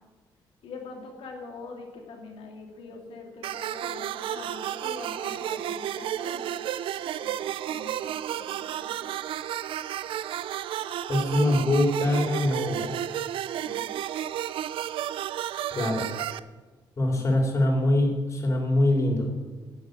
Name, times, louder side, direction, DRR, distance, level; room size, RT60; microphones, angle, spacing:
voice 1, 0.6-6.5 7.2-7.4 7.7-9.1 13.6-13.8 17.1-17.2, left 4 dB, 80° left, 1 dB, 2.6 m, -43 dB
sound 1, 3.4-16.4, right 11 dB, 75° right, 0.4 m, -32 dB
voice 2, 11.1-13.0 15.7-16.1 17.0-19.3, left 1 dB, 35° left, 1 dB, 3.2 m, -23 dB
11.5 x 6.3 x 9.2 m, 1.3 s
cardioid pair, 115°, 9 cm